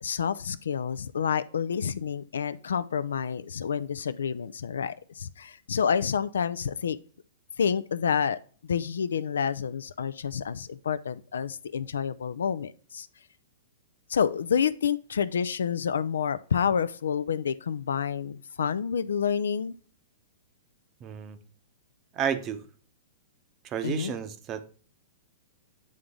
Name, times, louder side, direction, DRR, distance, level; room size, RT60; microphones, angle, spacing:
voice 1, 0.0-7.0 7.6-8.4 8.7-13.1 14.1-19.8 23.8-24.1, left 7 dB, 70° left, 0.3 m, -28 dB
voice 2, 21.0-21.4 22.1-22.6 23.6-24.8, right 8 dB, 30° right, 0.8 m, -32 dB
8.5 x 3.8 x 3.6 m
figure-of-eight pair, 105°, 0 cm